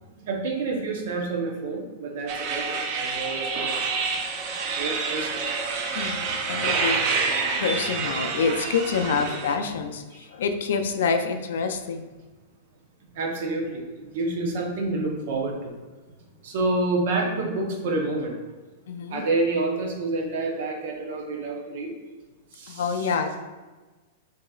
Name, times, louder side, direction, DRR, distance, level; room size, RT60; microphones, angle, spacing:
voice 1, 0.1-3.8 4.8-5.4 10.1-10.3 13.1-15.7 16.4-18.4 19.1-21.9 22.5-23.1, right 2 dB, 55° right, 1 dB, 0.8 m, -28 dB
sound 1, 2.3-9.5, right 4 dB, 30° right, 0.4 m, -28 dB
voice 2, 5.9-7.0 7.6-12.1 18.9-19.2 22.7-23.3, left 5 dB, 75° left, 7 dB, 0.4 m, -27 dB
6.2 x 2.8 x 2.4 m, 1.3 s
supercardioid pair, 170°, 0 cm